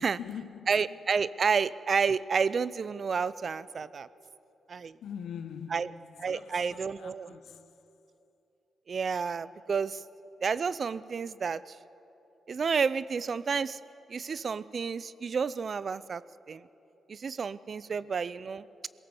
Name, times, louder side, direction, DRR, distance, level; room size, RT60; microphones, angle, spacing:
voice 1, 0.0-1.0 5.0-7.7 17.9-18.0, left 8 dB, 80° left, 1.0 m, -43 dB
voice 2, 0.7-4.1 4.7-5.0 5.7-5.9 6.2-7.3 8.9-10.0 10.4-11.8 12.5-13.8 14.1-16.2 16.5-16.6 17.1-18.9, right 5 dB, 55° right, 0.5 m, -30 dB
22.0 x 17.5 x 7.2 m
cardioid pair, 75°, 0 cm